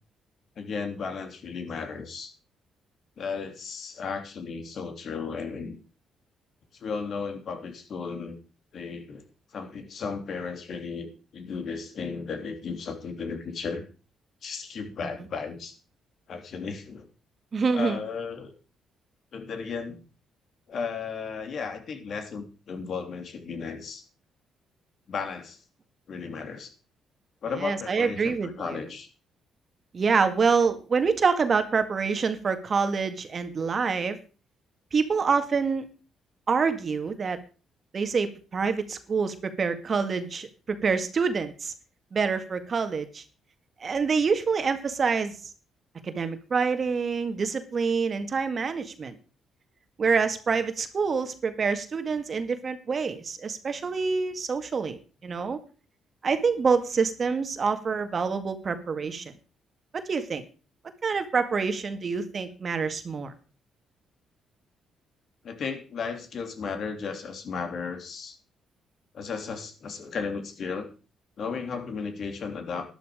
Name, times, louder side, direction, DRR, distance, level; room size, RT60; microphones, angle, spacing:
voice 1, 0.6-2.3 3.2-5.8 6.7-8.4 8.7-9.2 9.5-13.8 14.4-15.8 16.3-17.1 17.7-18.5 19.3-20.0 20.7-24.0 25.1-25.6 26.1-26.7 27.4-29.1 65.4-68.4 69.1-70.9 71.4-72.8, left 5 dB, 60° left, 6 dB, 3.1 m, -34 dB
voice 2, 17.5-18.0 27.6-28.8 29.9-34.2 34.9-35.9 36.5-37.4 37.9-41.7 42.1-43.2 43.8-45.4 46.0-49.2 50.0-55.6 56.2-59.3 60.1-60.4 61.0-63.3, right 5 dB, 45° right, 9 dB, 2.0 m, -26 dB
12.5 x 11.5 x 5.1 m, 0.35 s
cardioid pair, 90°, 0 cm